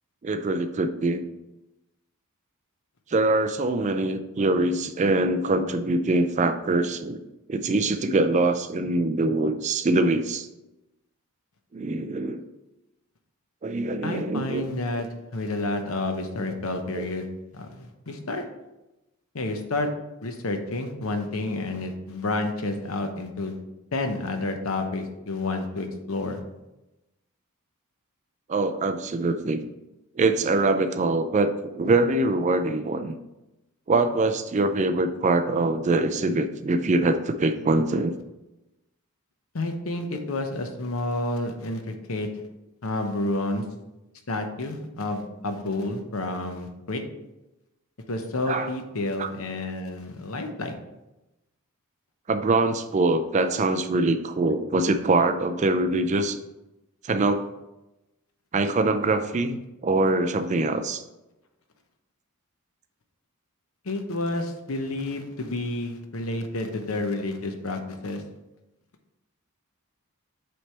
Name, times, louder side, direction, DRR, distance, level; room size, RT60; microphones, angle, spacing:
voice 1, 0.2-1.2 3.1-7.2 7.5-10.5 11.7-12.4 13.6-14.7 16.9-17.1 28.5-29.7 30.2-33.1 33.9-38.1 48.5-48.7 49.2-49.3 52.3-56.4 57.0-57.4 58.5-61.0, right 2 dB, 30° right, 9 dB, 0.4 m, -23 dB
voice 2, 14.0-15.1 15.3-17.3 17.5-18.4 19.3-19.9 20.2-23.6 23.9-26.4 39.5-42.3 42.8-43.6 44.3-47.0 48.1-50.7 63.8-68.2, left 2 dB, 70° left, 6 dB, 0.8 m, -30 dB
7.7 x 3.4 x 4.3 m, 0.97 s
head